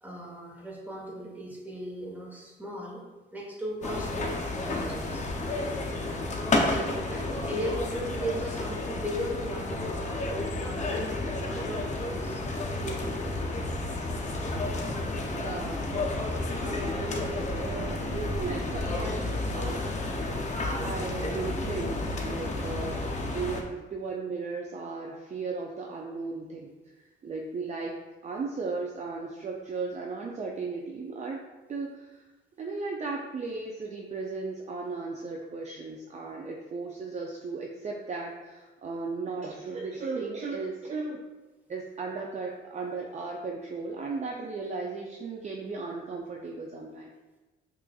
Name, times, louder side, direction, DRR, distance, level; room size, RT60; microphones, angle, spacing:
voice 1, 0.0-4.4 4.7-5.2 6.6-12.4 12.8-13.5, equal, 10° right, -3 dB, 1.1 m, -37 dB
sound 1, 3.8-23.6, left 2 dB, 35° left, 0.6 m, -31 dB
voice 2, 15.3-15.9 16.5-20.0 20.8-22.0 22.2-32.2 32.6-41.2 41.7-47.1, right 4 dB, 35° right, -1 dB, 0.4 m, -36 dB
5.7 x 2.4 x 2.3 m, 1.2 s
cardioid pair, 90°, 20 cm